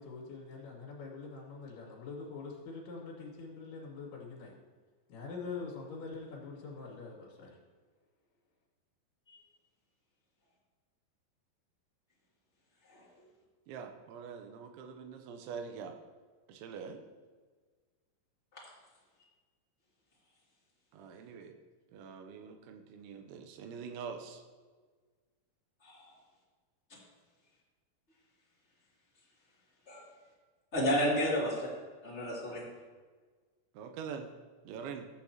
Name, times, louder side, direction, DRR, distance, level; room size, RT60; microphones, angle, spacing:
voice 1, 0.0-4.6 5.1-7.6, left 4 dB, 75° left, -9 dB, 3.9 m, -44 dB
voice 2, 13.7-16.0 16.5-17.0 20.9-21.5 21.9-24.4 33.7-34.3 34.6-35.1, right 6 dB, 90° right, 5 dB, 3.1 m, -44 dB
voice 3, 30.7-31.7 32.0-32.7, equal, 20° left, -7 dB, 1.9 m, -31 dB
14.5 x 8.4 x 2.9 m, 1.5 s
omnidirectional pair, 5.3 m